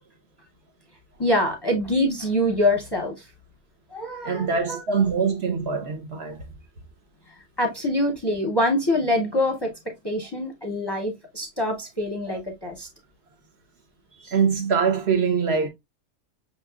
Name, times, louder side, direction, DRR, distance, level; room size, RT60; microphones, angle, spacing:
voice 1, 1.2-3.3 3.9-4.8 7.6-9.7 10.0-12.9 14.1-14.3, left 1 dB, 25° left, 0.7 m, -25 dB
voice 2, 4.2-6.4 12.3-12.4 14.3-15.7, right 6 dB, 55° right, 0.9 m, -23 dB
5.7 x 2.9 x 2.3 m
omnidirectional pair, 1.4 m